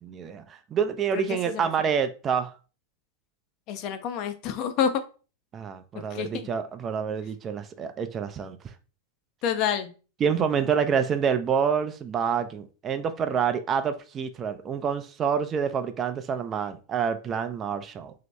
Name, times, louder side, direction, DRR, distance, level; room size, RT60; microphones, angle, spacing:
voice 1, 0.0-2.5 5.5-8.6 10.2-18.1, right 7 dB, 25° right, 0.3 m, -27 dB
voice 2, 1.1-1.9 3.7-5.0 6.1-6.5 9.4-9.9, left 8 dB, 40° left, 0.5 m, -28 dB
2.9 x 2.8 x 3.2 m
figure-of-eight pair, 90°, 0 cm